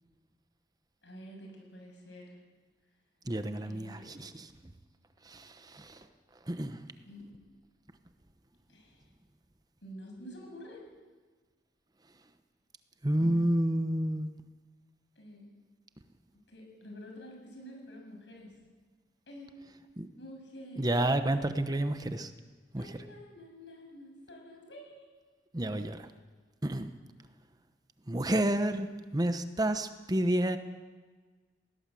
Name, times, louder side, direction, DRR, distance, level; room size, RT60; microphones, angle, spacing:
voice 1, 1.0-2.4 3.6-4.1 7.1-7.3 8.7-9.1 9.8-10.9 13.1-13.5 15.2-15.5 16.5-18.5 19.3-19.5 20.2-21.3 22.7-25.1, equal, 85° left, 1 dB, 7.3 m, -48 dB
voice 2, 3.3-4.5 5.2-6.1 6.5-6.8 13.0-14.3 20.0-20.1 20.8-22.3 22.7-23.1 25.5-26.1 26.6-26.9 28.1-30.6, right 1 dB, 20° right, 9 dB, 1.0 m, -30 dB
20.5 x 18.0 x 7.7 m, 1.4 s
head